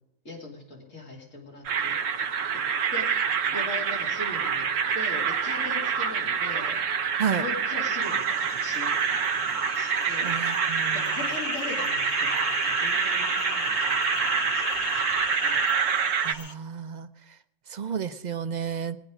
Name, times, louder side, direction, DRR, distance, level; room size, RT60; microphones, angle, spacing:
voice 1, 0.2-2.6 2.9-15.7, left 3 dB, 90° left, -3 dB, 3.3 m, -41 dB
sound 1, 1.7-16.3, right 7 dB, 90° right, 1.1 m, -27 dB
sound 2, 8.0-16.5, left 4 dB, 45° left, 1.1 m, -35 dB
voice 2, 10.2-11.2 16.2-17.1 17.7-19.0, right 7 dB, 50° right, 11 dB, 0.5 m, -31 dB
20.0 x 9.9 x 5.0 m, 0.87 s
omnidirectional pair, 1.3 m